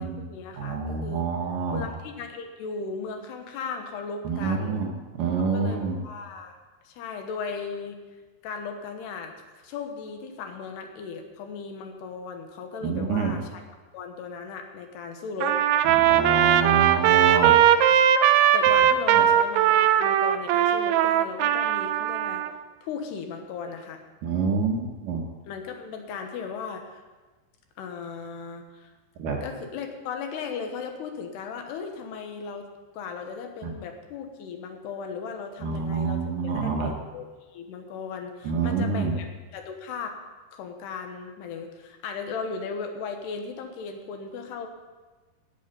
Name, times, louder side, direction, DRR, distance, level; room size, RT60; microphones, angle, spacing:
voice 1, 0.0-1.3 1.7-4.8 5.4-6.6 6.9-8.0 8.4-9.3 9.6-13.6 13.9-15.6 17.3-18.1 18.5-22.4 22.8-24.0 25.5-27.0 27.8-28.9 29.4-32.7 32.9-39.3 39.5-40.2 40.5-44.7, left 5 dB, 70° left, 5 dB, 3.1 m, -37 dB
voice 2, 0.5-1.9 4.2-6.0 12.8-13.4 15.9-17.5 19.1-19.2 24.2-25.2 29.2-29.4 33.6-33.7 35.6-36.9 38.4-39.2, right 5 dB, 65° right, 0 dB, 2.2 m, -27 dB
Trumpet, 15.4-22.5, right 10 dB, 85° right, 2.4 m, -20 dB
16.5 x 8.6 x 5.4 m, 1.3 s
omnidirectional pair, 5.1 m